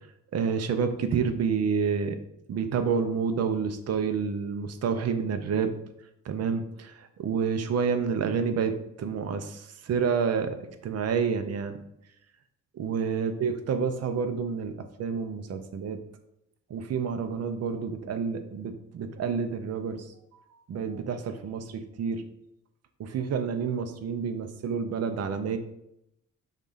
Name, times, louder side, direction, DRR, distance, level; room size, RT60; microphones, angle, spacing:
voice 1, 0.3-2.2 2.5-5.7 6.2-8.7 9.0-11.8 12.7-16.0 16.7-22.2 23.0-25.6, right 6 dB, 55° right, 7 dB, 0.7 m, -29 dB
7.3 x 2.5 x 5.5 m, 0.80 s
wide cardioid pair, 155°, 30 cm